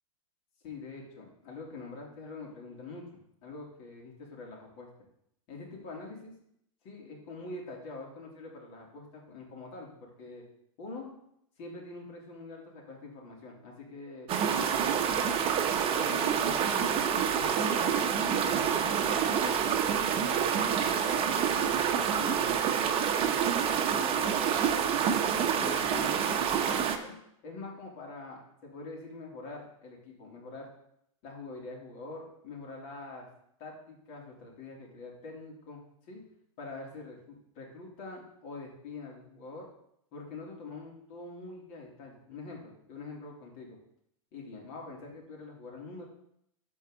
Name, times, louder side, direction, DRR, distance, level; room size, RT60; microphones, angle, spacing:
voice 1, 0.6-4.9 5.5-6.3 6.8-10.4 10.8-11.1 11.6-15.3 16.0-19.7 20.1-23.5 23.9-25.1 25.5-30.7 31.2-33.3 33.6-35.8 36.1-36.2 36.6-39.7 40.1-43.8 44.3-46.0, left 3 dB, 50° left, -2 dB, 3.2 m, -44 dB
sound 1, 14.3-27.0, right 8 dB, 30° right, 0.9 m, -27 dB
13.0 x 4.6 x 3.9 m, 0.75 s
hypercardioid pair, 105°, 18 cm